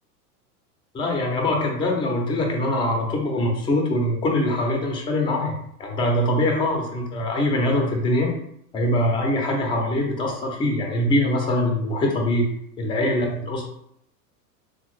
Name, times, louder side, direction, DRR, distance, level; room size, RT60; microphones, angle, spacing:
voice 1, 0.9-5.5 5.8-8.3 8.7-12.5 12.8-13.6, left 1 dB, 10° left, 1 dB, 0.5 m, -23 dB
3.7 x 2.1 x 3.0 m, 0.72 s
figure-of-eight pair, 95°, 48 cm